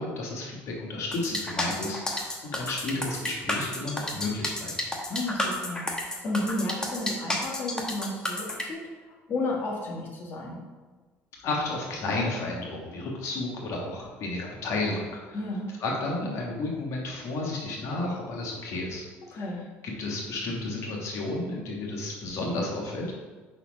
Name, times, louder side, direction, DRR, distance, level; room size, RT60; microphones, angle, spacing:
voice 1, 0.0-4.7 11.4-15.4 15.8-19.5 20.0-23.1, left 2 dB, 60° left, -1 dB, 1.4 m, -32 dB
sound 1, 1.1-8.6, left 1 dB, 10° left, 1.1 m, -31 dB
voice 2, 5.1-10.6 15.3-15.7 19.3-19.6, left 2 dB, 40° left, -3 dB, 1.4 m, -32 dB
5.1 x 4.2 x 5.0 m, 1.3 s
supercardioid pair, 95°, 6 cm